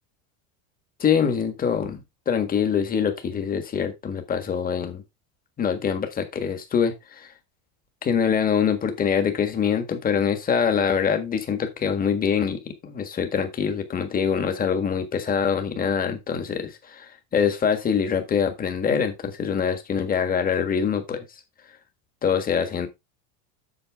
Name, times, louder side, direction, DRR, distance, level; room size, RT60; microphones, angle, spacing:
voice 1, 1.0-5.0 5.6-7.3 8.0-21.2 22.2-22.9, left 7 dB, 20° left, 1.6 m, -24 dB
8.1 x 7.0 x 3.5 m
supercardioid pair, 150°, 40 cm